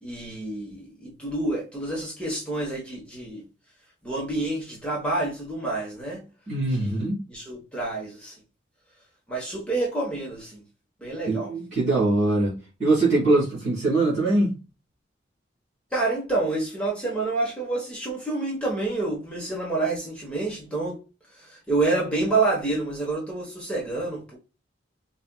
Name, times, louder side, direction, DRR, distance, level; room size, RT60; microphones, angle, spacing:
voice 1, 0.0-3.4 4.0-6.2 6.8-8.3 9.3-10.6 11.0-11.5 15.9-21.0 21.3-24.4, right 2 dB, 5° left, 1.0 m, -28 dB
voice 2, 6.5-7.2 11.3-12.5 12.8-14.5, right 2 dB, 40° right, 1.9 m, -22 dB
4.2 x 2.3 x 2.2 m
head